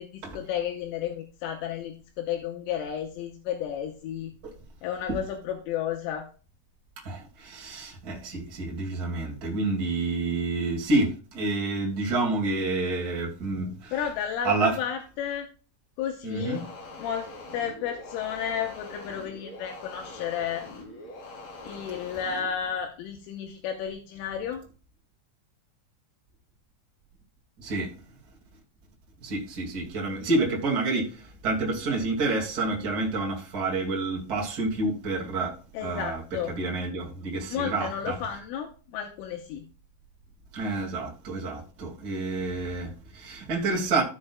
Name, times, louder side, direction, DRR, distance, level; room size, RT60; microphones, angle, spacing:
voice 1, 0.0-4.3 4.8-6.3 13.9-15.5 16.0-16.6 17.0-20.7 21.6-24.6 35.7-36.5 37.5-39.6, left 8 dB, 80° left, 3.3 m, -32 dB
voice 2, 7.0-13.9 14.4-14.8 16.2-16.7 27.6-27.9 29.2-35.5 35.8-38.2 40.5-44.0, right 3 dB, 45° right, 1.2 m, -29 dB
sound 1, 16.3-22.5, left 2 dB, 50° left, 3.7 m, -43 dB
15.0 x 6.5 x 2.3 m
omnidirectional pair, 6.0 m